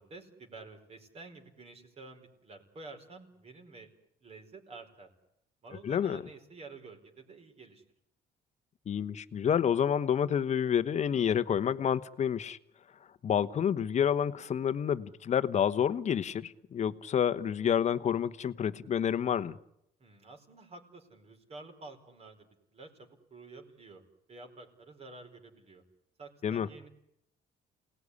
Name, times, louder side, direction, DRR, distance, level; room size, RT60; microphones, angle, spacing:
voice 1, 0.0-3.9 4.2-5.1 5.6-7.8 20.0-24.0 24.3-25.8 26.2-26.9, right 3 dB, 40° right, 4 dB, 4.9 m, -50 dB
voice 2, 5.8-6.2 8.9-12.6 13.2-19.6 26.4-26.7, left 8 dB, 45° left, 14 dB, 1.1 m, -29 dB
28.0 x 19.0 x 9.9 m, 0.81 s
cardioid pair, 110°, 17 cm